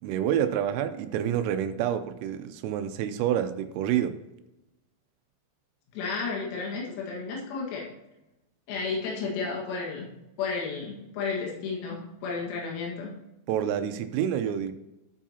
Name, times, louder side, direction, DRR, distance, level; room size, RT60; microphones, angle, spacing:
voice 1, 0.0-4.2 13.5-14.7, right 10 dB, 85° right, 9 dB, 3.3 m, -28 dB
voice 2, 5.9-7.9 8.7-10.1 10.4-13.1, left 4 dB, 90° left, -2 dB, 4.5 m, -32 dB
13.0 x 7.3 x 2.8 m, 0.92 s
omnidirectional pair, 6.0 m